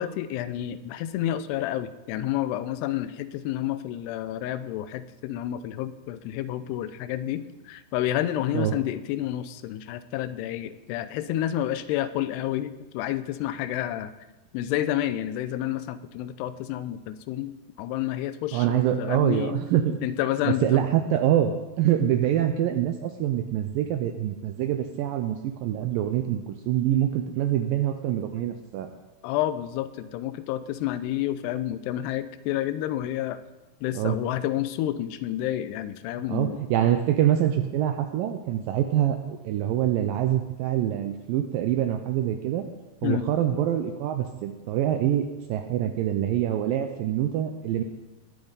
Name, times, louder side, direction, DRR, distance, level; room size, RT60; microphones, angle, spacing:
voice 1, 0.0-14.1 14.5-17.5 17.8-19.6 20.0-20.8 29.2-33.4 33.8-36.6 43.0-43.3, left 12 dB, 85° left, 13 dB, 2.7 m, -29 dB
voice 2, 18.5-20.0 20.5-28.9 34.0-34.2 36.3-42.7 43.0-47.8, right 11 dB, 90° right, 6 dB, 2.0 m, -25 dB
21.0 x 8.7 x 4.0 m, 1.1 s
omnidirectional pair, 4.7 m